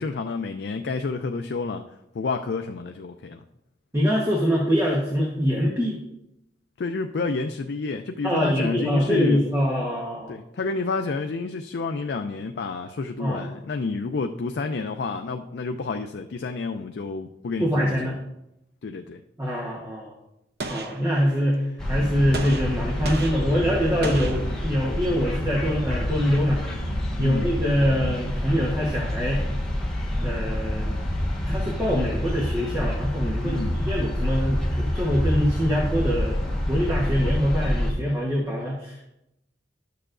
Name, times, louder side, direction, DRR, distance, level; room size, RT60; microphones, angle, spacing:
voice 1, 0.0-1.8 2.1-3.4 6.8-9.4 10.3-18.2 18.8-19.2 27.2-27.5 33.4-33.8, left 4 dB, 65° left, 6 dB, 0.4 m, -29 dB
voice 2, 3.9-6.0 8.2-10.4 13.2-13.5 17.6-18.2 19.4-20.1 20.7-21.6 21.9-26.6 27.0-29.4 30.2-31.0 31.5-36.4 36.7-39.1, equal, 15° right, -3 dB, 1.1 m, -24 dB
Gunshot gunfire, 20.6-21.7 22.3-25.1, right 2 dB, 60° right, 0.8 m, -36 dB
sound 1, 21.8-37.9, left 1 dB, 5° left, 1.3 m, -27 dB
12.0 x 6.7 x 2.5 m, 0.86 s
head